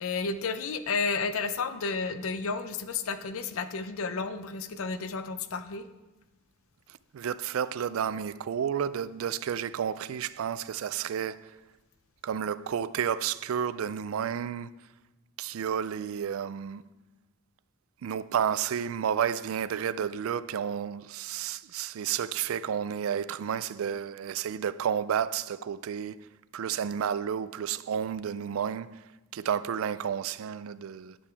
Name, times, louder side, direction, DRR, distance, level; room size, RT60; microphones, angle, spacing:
voice 1, 0.0-5.8, left 4 dB, 75° left, 0.5 m, -32 dB
voice 2, 7.1-11.5 12.2-14.7 15.4-16.8 18.0-26.3 26.5-29.0 29.3-31.2, right 8 dB, 75° right, 0.3 m, -31 dB
9.9 x 6.9 x 3.4 m
head